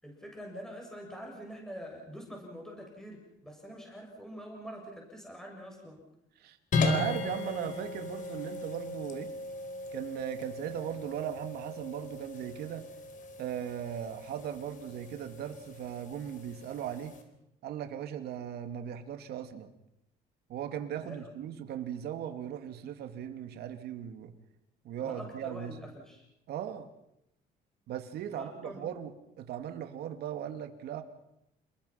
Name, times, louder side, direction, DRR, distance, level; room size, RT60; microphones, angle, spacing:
voice 1, 0.0-6.1 21.0-21.3 25.0-26.2 28.3-28.9, equal, 5° left, 0 dB, 7.3 m, -45 dB
voice 2, 6.4-9.3 9.9-12.9 13.4-17.2 17.6-19.7 20.5-24.3 24.8-25.8 26.5-26.9 27.9-31.0, right 10 dB, 70° right, 7 dB, 2.6 m, -38 dB
sound 1, 6.7-17.2, left 3 dB, 50° left, 4.4 m, -37 dB
29.0 x 21.5 x 5.9 m, 0.83 s
cardioid pair, 110°, 17 cm